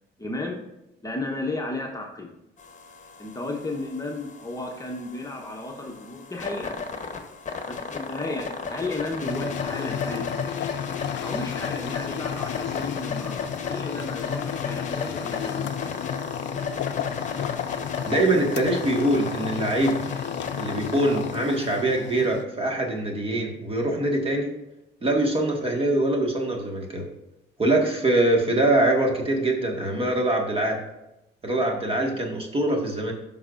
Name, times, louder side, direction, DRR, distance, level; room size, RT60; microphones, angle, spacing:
voice 1, 0.2-0.6 1.0-2.3 3.2-6.7 7.7-10.3 11.2-15.8, left 2 dB, 15° left, 0 dB, 1.1 m, -33 dB
sound 1, 2.6-21.8, left 4 dB, 40° left, 1.1 m, -35 dB
sound 2, 9.3-22.4, left 10 dB, 65° left, 0.4 m, -33 dB
voice 2, 18.0-20.0 20.6-24.5 25.0-27.1 27.6-30.8 31.4-33.1, right 1 dB, 30° right, 1 dB, 1.7 m, -23 dB
13.0 x 5.6 x 2.5 m, 0.90 s
cardioid pair, 90°, 20 cm